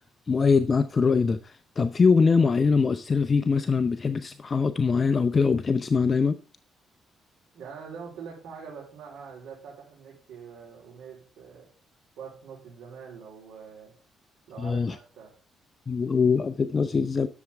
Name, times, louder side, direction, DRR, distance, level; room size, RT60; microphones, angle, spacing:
voice 1, 0.3-6.4 14.6-15.0 15.9-17.3, left 5 dB, 35° left, 0.6 m, -23 dB
voice 2, 7.5-11.7 12.2-13.9 14.5-15.3, right 6 dB, 80° right, 3.6 m, -44 dB
11.0 x 7.1 x 3.5 m
cardioid pair, 90°, 0 cm